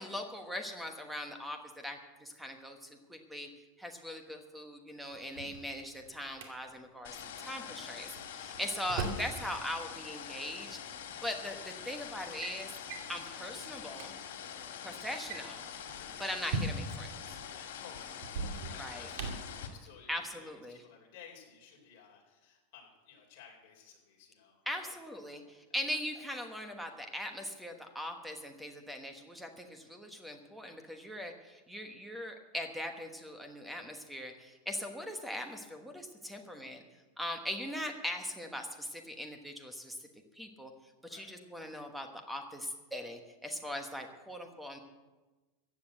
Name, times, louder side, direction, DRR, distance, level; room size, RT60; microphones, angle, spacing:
voice 1, 0.0-3.5 3.8-10.8 11.2-12.7 13.1-14.1 14.8-15.6 16.2-17.1 18.8-19.1 20.1-20.8 24.7-36.8 37.2-40.0 40.3-40.7 41.0-44.8, equal, ahead, 5 dB, 1.2 m, -40 dB
Drawer open or close, 5.1-6.5 8.2-9.3 10.6-10.7 11.5-11.8 12.1-12.5 12.9-13.1 13.6-13.7 13.9-14.1 15.1-17.1 18.2-19.5, right 3 dB, 60° right, 2.4 m, -39 dB
sound 1, 7.0-19.7, left 8 dB, 85° left, 2.4 m, -45 dB
voice 2, 17.5-25.2 25.4-25.8 41.1-41.3, left 7 dB, 45° left, -1 dB, 4.3 m, -56 dB
14.5 x 8.4 x 8.0 m, 1.2 s
supercardioid pair, 175°, 0 cm